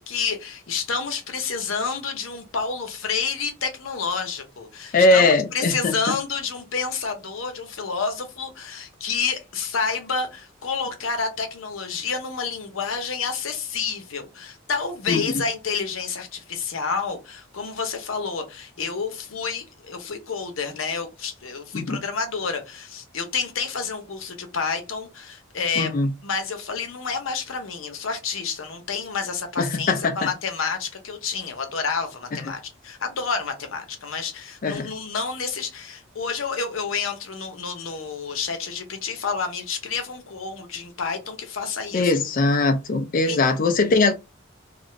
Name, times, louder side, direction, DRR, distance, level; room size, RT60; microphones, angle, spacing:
voice 1, 0.0-25.9 26.2-42.1 43.2-43.4, left 5 dB, 85° left, 0.8 m, -29 dB
voice 2, 4.9-6.1 15.1-15.2 21.7-22.0 25.8-26.1 29.6-30.3 32.3-32.4 34.6-34.9 41.9-44.1, left 3 dB, 45° left, 0.4 m, -20 dB
2.5 x 2.4 x 3.0 m
head